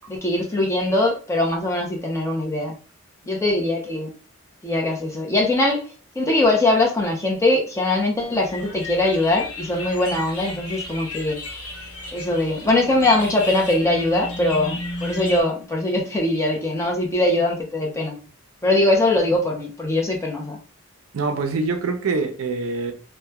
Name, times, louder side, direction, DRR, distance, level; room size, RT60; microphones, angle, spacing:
voice 1, 0.1-2.7 3.3-4.1 4.6-5.9 6.2-11.4 12.1-18.2 18.6-20.6, left 2 dB, 15° left, 0.5 m, -21 dB
sound 1, 8.4-15.4, left 3 dB, 90° left, 0.9 m, -35 dB
sound 2, 11.7-15.6, equal, 55° left, 0.8 m, -36 dB
voice 2, 21.1-22.9, right 4 dB, 70° right, 0.4 m, -24 dB
2.9 x 2.1 x 2.2 m
head